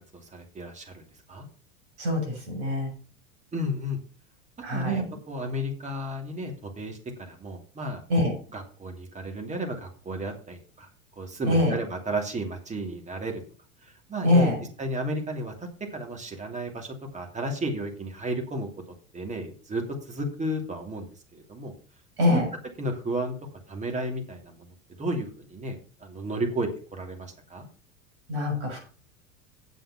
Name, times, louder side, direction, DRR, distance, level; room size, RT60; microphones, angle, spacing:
voice 1, 0.2-1.0 1.3-1.5 3.5-4.0 4.7-8.0 8.5-10.9 11.2-13.4 13.8-14.5 14.8-18.7 19.1-21.1 21.3-21.7 22.3-22.4 22.8-23.4 23.7-24.7 25.0-27.7, right 1 dB, 15° right, 3 dB, 2.9 m, -33 dB
voice 2, 2.0-2.9 4.6-5.1 8.1-8.3 11.5-11.8 14.2-14.7 22.2-22.5 28.3-28.8, left 1 dB, 55° right, 2 dB, 6.9 m, -24 dB
9.2 x 7.4 x 5.9 m, 0.39 s
figure-of-eight pair, 85°, 41 cm